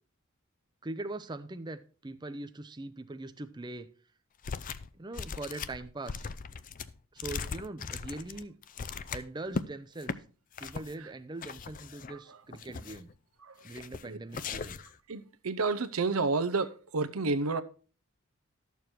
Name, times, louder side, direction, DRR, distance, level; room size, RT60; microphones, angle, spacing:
voice 1, 0.8-3.9 4.9-6.3 7.1-8.5 9.1-10.2 10.6-13.1 13.6-14.8, right 2 dB, 20° right, 0.5 m, -41 dB
sound 1, 4.4-4.9 5.1-9.7 10.0-10.2 10.5-10.9 11.4-12.1 12.5-13.1 13.6-14.0 14.3-14.9, left 5 dB, 40° left, 0.5 m, -39 dB
voice 2, 15.1-17.6, right 3 dB, 90° right, 0.8 m, -30 dB
12.5 x 6.9 x 4.5 m
head